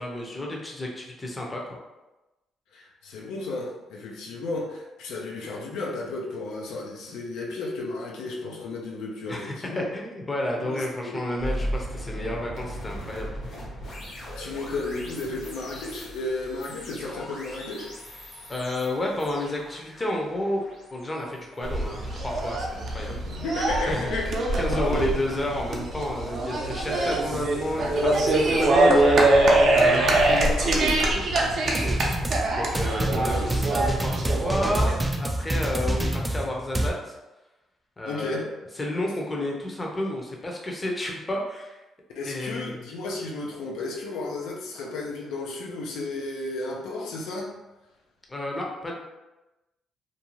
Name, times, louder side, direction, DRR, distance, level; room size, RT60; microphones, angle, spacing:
voice 1, 0.0-1.8 9.3-13.4 18.5-20.6 20.9-23.4 23.9-24.1 24.6-31.3 31.6-32.2 32.5-33.7 34.0-37.1 38.0-38.5 38.8-41.8 42.2-42.8 48.3-48.9, left 1 dB, 20° left, -1 dB, 0.6 m, -31 dB
voice 2, 2.7-9.9 10.6-11.2 14.1-17.9 23.3-25.2 33.2-33.8 38.0-38.5 42.1-47.5, left 2 dB, 90° left, -2 dB, 0.5 m, -33 dB
sound 1, 11.4-22.4, equal, 65° left, 1.1 m, -38 dB
sound 2, 21.6-35.0, right 2 dB, 60° right, 0.6 m, -23 dB
sound 3, 31.7-36.9, right 1 dB, 15° right, 0.3 m, -27 dB
2.6 x 2.3 x 3.0 m, 1.0 s
cardioid pair, 90°, 0 cm